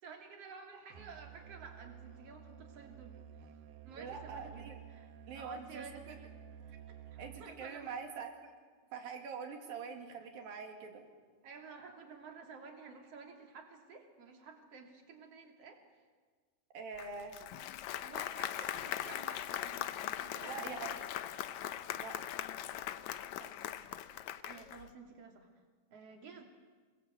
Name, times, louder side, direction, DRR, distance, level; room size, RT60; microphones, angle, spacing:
voice 1, 0.0-3.2 3.8-5.1 5.3-6.3 6.7-6.8 7.4-8.0 11.4-16.0 18.0-20.8 23.4-23.9 24.4-25.5 25.9-26.4, right 5 dB, 40° right, 3 dB, 3.8 m, -52 dB
Musical instrument, 0.9-7.7, right 9 dB, 90° right, 3.3 m, -52 dB
voice 2, 4.0-4.8 5.3-6.1 7.2-8.5 8.9-11.1 16.7-17.4 20.3-21.0 21.9-22.1, right 5 dB, 70° right, 4 dB, 4.1 m, -44 dB
Applause, 17.0-24.9, left 12 dB, 75° left, 1.7 m, -40 dB
27.0 x 22.0 x 8.4 m, 1.5 s
omnidirectional pair, 4.3 m